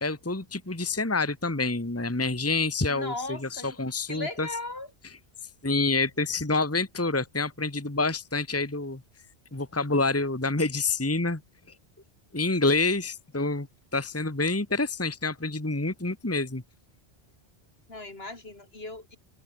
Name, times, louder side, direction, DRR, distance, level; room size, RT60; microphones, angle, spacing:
voice 1, 0.0-4.5 5.6-9.0 9.5-11.4 12.3-13.7 13.9-16.6, left 3 dB, 15° left, 1.5 m, -27 dB
voice 2, 2.9-3.8 4.1-4.9 17.9-19.2, left 2 dB, 65° left, 3.9 m, -37 dB
open air
omnidirectional pair, 1.1 m